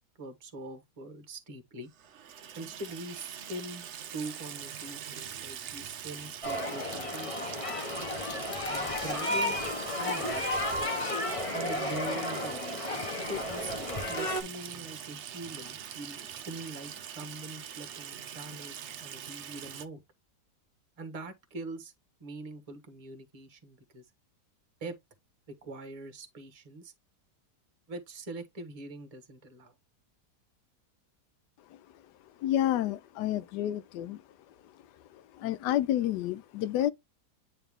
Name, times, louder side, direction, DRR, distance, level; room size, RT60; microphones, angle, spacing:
voice 1, 0.2-1.9 2.5-3.9 4.1-7.5 8.6-9.6 9.9-10.6 11.5-12.6 13.2-20.0 21.0-21.9 22.2-24.0 24.8-25.0 25.5-26.9 27.9-29.7, right 2 dB, 25° right, 1.1 m, -43 dB
Water tap faucet / Sink (filling or washing), 1.9-19.9, right 9 dB, 60° right, 0.8 m, -43 dB
sound 1, 6.4-14.4, left 1 dB, 25° left, 0.9 m, -33 dB
voice 2, 32.4-34.2 35.3-36.9, left 12 dB, 80° left, 1.2 m, -29 dB
9.0 x 3.2 x 3.5 m
omnidirectional pair, 1.8 m